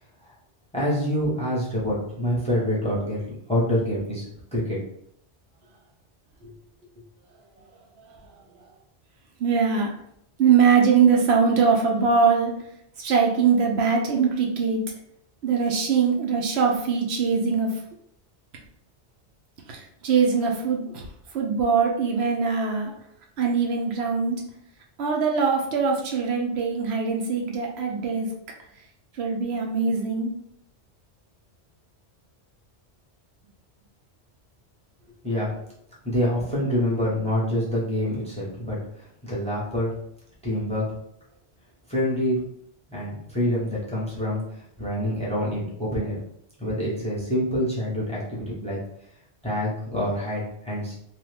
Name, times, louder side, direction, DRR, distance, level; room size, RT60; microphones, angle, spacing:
voice 1, 0.7-3.2 3.5-4.2 4.5-4.8 6.4-6.5 35.2-35.5 36.0-38.8 39.2-39.9 40.4-40.9 41.9-42.4 42.9-44.4 44.8-46.2 46.6-48.8 49.4-51.0, equal, 5° left, -5 dB, 0.7 m, -26 dB
voice 2, 9.4-9.9 10.4-12.5 13.0-14.8 15.4-17.7 19.7-21.0 21.3-22.9 23.4-24.4 25.0-28.3 29.2-30.3, right 5 dB, 70° right, 1 dB, 0.8 m, -22 dB
2.7 x 2.4 x 3.2 m, 0.72 s
omnidirectional pair, 1.2 m